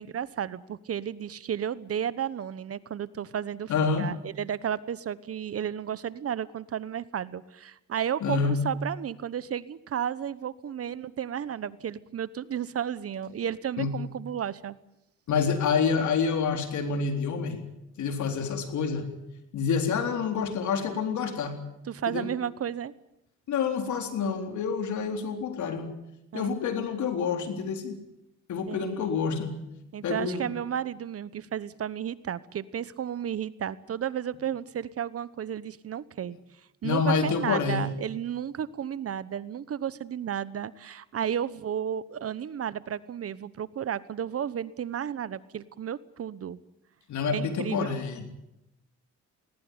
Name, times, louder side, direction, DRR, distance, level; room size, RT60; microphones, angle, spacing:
voice 1, 0.0-3.7 4.0-14.7 21.9-22.9 26.3-26.5 28.7-29.1 29.9-36.4 36.8-46.6 47.3-47.9, right 9 dB, 50° right, 18 dB, 1.1 m, -33 dB
voice 2, 3.7-4.1 8.2-8.5 13.8-13.9 15.3-17.6 18.0-19.1 19.5-21.6 22.1-22.3 23.5-25.9 26.3-28.0 28.5-29.5 30.0-30.5 36.8-37.9 47.1-48.3, left 5 dB, 70° left, 6 dB, 3.9 m, -27 dB
20.0 x 19.0 x 9.6 m, 0.85 s
cardioid pair, 90°, 30 cm